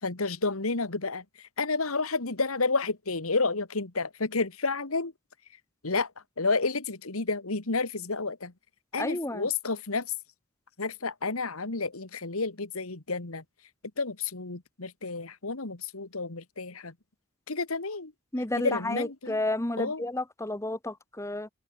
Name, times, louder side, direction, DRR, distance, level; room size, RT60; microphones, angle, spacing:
voice 1, 0.0-5.1 5.8-6.1 6.4-8.5 8.9-10.1 10.8-13.4 14.0-16.9 17.5-18.1 18.6-19.4 19.8-20.0, left 3 dB, 85° left, 2.0 m, -30 dB
voice 2, 9.0-9.5 18.3-21.5, left 1 dB, 15° left, 1.1 m, -31 dB
open air
head